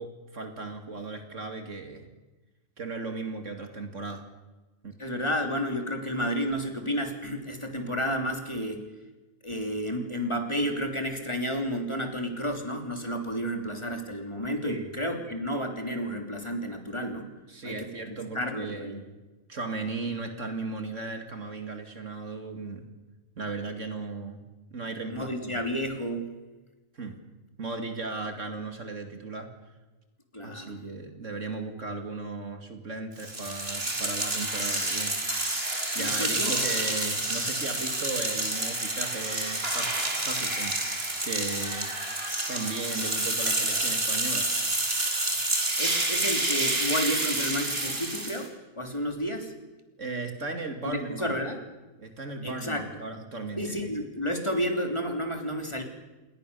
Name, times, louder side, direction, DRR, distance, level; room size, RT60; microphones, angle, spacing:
voice 1, 0.0-2.1 2.8-4.2 4.8-5.0 14.6-14.9 17.5-19.2 19.5-22.9 23.3-24.4 24.7-25.6 26.9-27.2 27.6-29.5 30.4-35.2 35.9-41.9 42.5-44.5 45.3-45.4 50.0-51.4 52.0-53.9, right 3 dB, 60° right, 5 dB, 2.9 m, -36 dB
voice 2, 5.0-8.8 9.4-17.3 17.6-18.9 25.1-26.3 30.3-30.7 35.9-36.5 45.8-48.5 48.7-49.5 50.8-51.6 52.4-52.9 53.6-55.8, equal, 20° left, 4 dB, 3.2 m, -31 dB
sound 1, 33.2-48.5, right 2 dB, 45° right, 4.1 m, -29 dB
29.0 x 21.0 x 6.9 m, 1.2 s
omnidirectional pair, 1.5 m